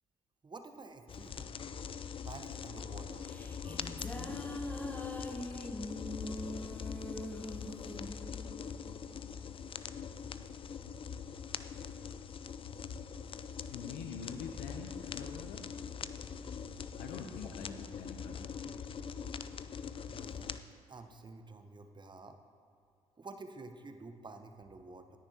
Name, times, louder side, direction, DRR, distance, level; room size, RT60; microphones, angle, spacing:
voice 1, 0.4-1.5 2.2-3.3 3.5-3.9 20.1-20.6 20.9-22.4 23.2-25.2, right 3 dB, 30° right, 7 dB, 1.0 m, -50 dB
sound 1, 1.1-20.6, left 7 dB, 35° left, 0.5 m, -42 dB
sound 2, 3.0-9.6, equal, 10° left, 1.1 m, -44 dB
voice 2, 13.7-16.1 16.8-18.8, left 6 dB, 70° left, 4 dB, 0.7 m, -46 dB
17.5 x 10.0 x 2.8 m, 2.5 s
hypercardioid pair, 45°, 16 cm